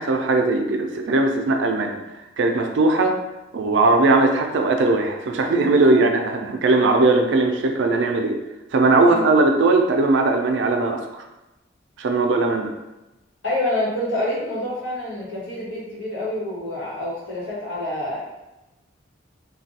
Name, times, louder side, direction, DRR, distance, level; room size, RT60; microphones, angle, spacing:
voice 1, 0.0-2.0 2.4-3.2 3.5-8.4 8.7-11.0 12.0-12.7, right 3 dB, 70° right, 4 dB, 0.4 m, -19 dB
voice 2, 13.4-18.2, left 1 dB, 75° left, -8 dB, 1.4 m, -27 dB
3.3 x 2.2 x 2.7 m, 1.0 s
head